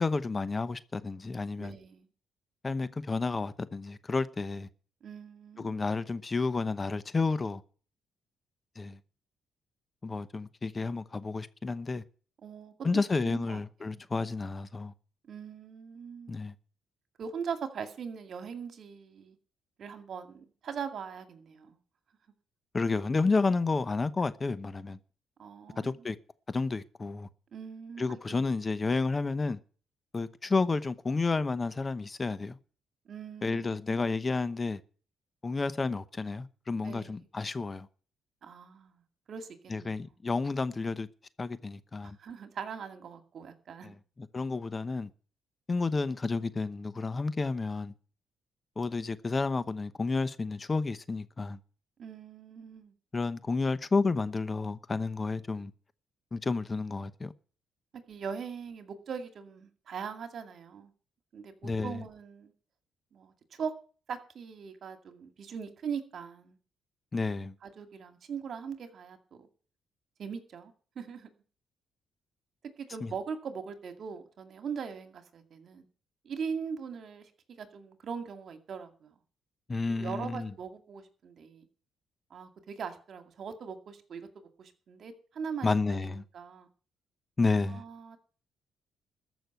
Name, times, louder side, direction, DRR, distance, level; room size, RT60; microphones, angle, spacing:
voice 1, 0.0-1.8 2.6-4.7 5.6-7.6 8.8-9.0 10.0-12.0 12.8-14.9 16.3-16.5 22.7-25.0 25.8-26.2 26.5-27.3 28.0-29.6 30.1-32.6 33.4-34.8 35.4-37.9 39.7-41.1 41.4-42.2 43.8-45.1 45.7-47.9 48.8-51.6 53.1-55.7 56.3-57.3 61.6-62.0 67.1-67.5 73.0-73.1 79.7-80.5 85.6-86.2 87.4-87.8, left 3 dB, 30° left, 0.8 m, -31 dB
voice 2, 1.6-2.1 5.0-5.7 12.4-12.7 13.2-14.0 15.2-16.3 17.2-19.4 19.8-21.8 25.4-26.1 27.5-28.5 33.1-33.8 36.8-37.3 38.4-39.0 39.3-40.2 42.0-43.9 52.0-52.9 58.1-60.9 61.3-62.5 63.1-63.7 64.1-66.6 67.6-69.5 70.2-71.3 72.8-75.9 76.2-77.3 77.6-79.1 79.8-81.7 82.3-85.7 86.0-86.7 87.7-88.2, right 6 dB, 60° right, 2.2 m, -41 dB
14.0 x 6.2 x 9.3 m
cardioid pair, 90°, 0 cm